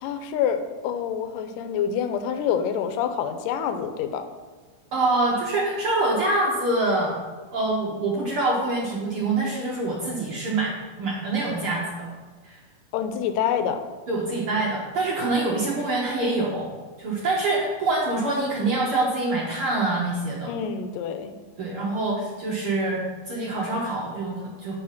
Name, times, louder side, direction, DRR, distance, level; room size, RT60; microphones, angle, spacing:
voice 1, 0.0-4.3 12.9-13.8 20.5-21.3, left 8 dB, 90° left, 8 dB, 2.2 m, -27 dB
voice 2, 4.9-7.2 7.5-12.1 12.4-12.6 14.1-16.7 17.0-20.5 21.6-24.8, right 2 dB, 65° right, -4 dB, 1.4 m, -25 dB
7.8 x 5.0 x 5.8 m, 1.4 s
omnidirectional pair, 3.8 m